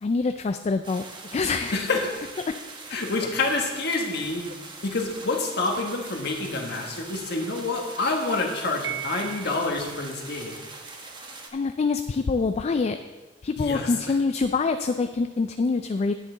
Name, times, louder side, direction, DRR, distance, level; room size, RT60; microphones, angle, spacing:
voice 1, 0.0-1.0 1.3-1.8 2.5-2.6 11.5-13.0 13.4-16.1, left 4 dB, 35° left, 8 dB, 0.3 m, -25 dB
sound 1, 0.8-11.5, right 3 dB, 25° right, 1.0 m, -42 dB
voice 2, 1.7-2.3 2.9-4.4 4.8-10.5 13.6-13.9, left 3 dB, 60° left, 2 dB, 1.4 m, -27 dB
Piano, 8.8-10.0, right 12 dB, 90° right, 0.5 m, -36 dB
9.9 x 8.2 x 3.9 m, 1.2 s
head